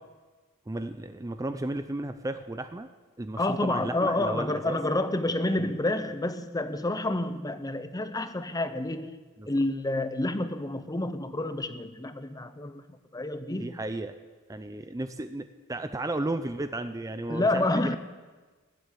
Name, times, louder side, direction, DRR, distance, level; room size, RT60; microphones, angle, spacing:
voice 1, 0.7-2.9 3.2-4.8 5.6-5.7 9.4-9.5 13.6-14.1 14.5-18.0, right 2 dB, 15° right, 0.5 m, -34 dB
voice 2, 3.4-9.2 9.5-12.8 13.1-13.7 17.3-18.0, left 2 dB, 15° left, 0.7 m, -29 dB
18.5 x 7.9 x 8.5 m
head